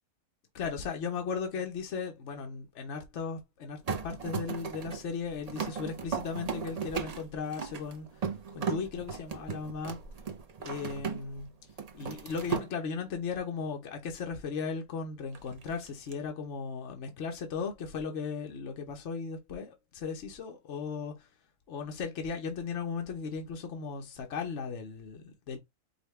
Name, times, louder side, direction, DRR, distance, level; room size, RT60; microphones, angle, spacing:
voice 1, 0.5-8.1 8.5-10.0 10.6-11.5 11.9-21.3 21.7-25.6, left 5 dB, 60° left, 1.2 m, -36 dB
sound 1, 3.9-11.4 11.7-12.7 15.3-16.1, right 6 dB, 45° right, 0.5 m, -37 dB
5.4 x 2.3 x 3.2 m
omnidirectional pair, 1.4 m